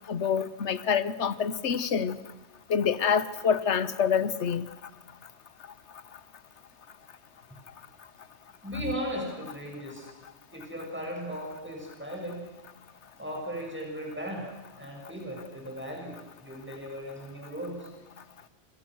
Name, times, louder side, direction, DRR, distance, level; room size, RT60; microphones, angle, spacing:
voice 1, 0.1-2.2 2.7-4.7, left 7 dB, 85° left, 15 dB, 1.4 m, -26 dB
voice 2, 8.6-10.1 10.5-12.5 13.2-14.5 14.8-17.9, equal, 10° right, 0 dB, 6.6 m, -37 dB
29.0 x 27.0 x 6.3 m, 1.1 s
omnidirectional pair, 1.1 m